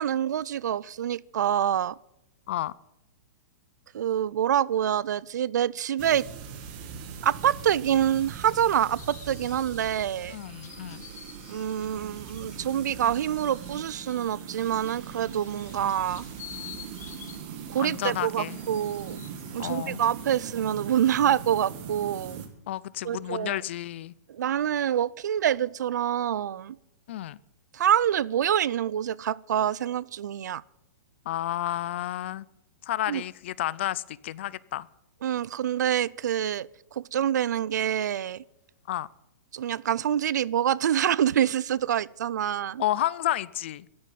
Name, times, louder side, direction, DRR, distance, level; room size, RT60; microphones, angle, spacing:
voice 1, 0.0-2.0 3.9-6.3 7.2-10.4 11.5-16.2 17.7-19.2 19.5-22.4 23.0-23.6 24.3-26.8 27.7-30.6 33.1-33.2 35.2-38.4 39.5-42.8, right 10 dB, 70° right, 24 dB, 0.5 m, -26 dB
sound 1, 6.0-22.5, right 7 dB, 30° right, 1.7 m, -41 dB
sound 2, 9.0-20.5, left 9 dB, 65° left, 3.0 m, -50 dB
voice 2, 10.3-11.0 17.8-18.6 19.6-20.0 22.7-24.1 27.1-27.4 31.3-32.5 32.8-34.9 38.9-39.1 42.8-43.9, left 13 dB, 40° left, 22 dB, 0.4 m, -31 dB
14.0 x 8.7 x 9.2 m, 0.86 s
hypercardioid pair, 170°, 10 cm